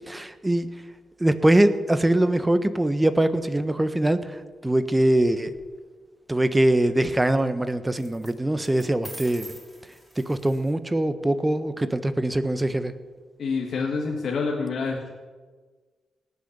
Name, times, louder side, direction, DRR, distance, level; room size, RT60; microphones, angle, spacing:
voice 1, 0.1-0.7 1.2-5.5 6.3-9.5 10.3-12.9, right 1 dB, 15° right, 11 dB, 1.3 m, -22 dB
sound 1, 5.2-5.6 8.0-8.3 8.6-10.7, equal, ahead, 6.1 m, -44 dB
voice 2, 13.4-15.1, left 4 dB, 65° left, 0 dB, 2.0 m, -27 dB
18.5 x 7.0 x 8.1 m, 1.4 s
supercardioid pair, 50°, 0 cm